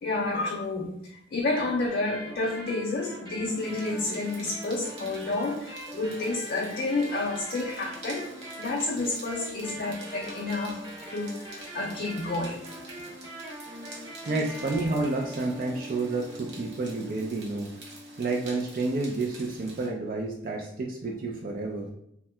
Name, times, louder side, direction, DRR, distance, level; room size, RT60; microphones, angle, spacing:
voice 1, 0.0-8.3 8.6-10.8 11.1-12.6 13.0-13.1, left 2 dB, 55° left, -2 dB, 0.4 m, -30 dB
sound 1, 1.9-18.8, equal, 25° right, 0.8 m, -43 dB
sound 2, 3.6-19.9, right 2 dB, 65° right, 0.8 m, -48 dB
voice 2, 14.3-17.7 18.2-21.9, right 3 dB, 50° right, 0 dB, 0.4 m, -30 dB
2.7 x 2.2 x 3.2 m, 0.76 s
head